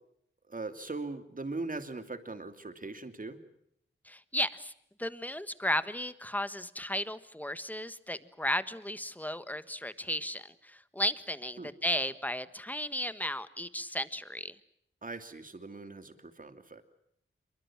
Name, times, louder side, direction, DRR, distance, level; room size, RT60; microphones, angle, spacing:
voice 1, 0.5-3.4 11.6-11.7 15.0-16.8, right 3 dB, 40° right, 8 dB, 2.8 m, -40 dB
voice 2, 4.0-4.7 5.0-14.5, left 1 dB, 10° left, 13 dB, 1.4 m, -34 dB
27.0 x 23.5 x 7.5 m, 0.73 s
wide cardioid pair, 100°, 21 cm